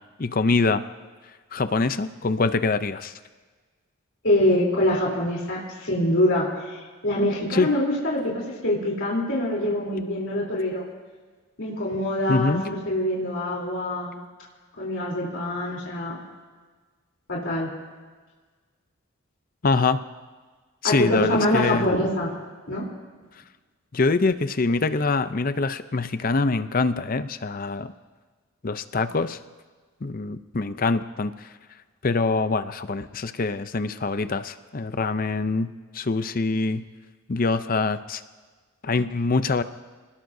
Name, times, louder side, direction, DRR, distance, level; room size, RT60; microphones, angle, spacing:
voice 1, 0.2-0.8 1.5-3.1 7.5-7.7 12.3-12.6 19.6-20.0 20.8-21.9 23.9-27.9 28.6-29.4 30.0-31.5 32.0-36.8 37.3-38.2 38.8-39.6, left 3 dB, 40° left, 11 dB, 0.6 m, -24 dB
voice 2, 4.2-8.3 8.6-10.8 11.6-14.1 14.8-16.2 17.3-17.7 20.8-22.3 22.7-22.9 38.8-38.9, left 1 dB, 60° left, -4 dB, 3.4 m, -24 dB
27.0 x 19.5 x 2.7 m, 1.4 s
head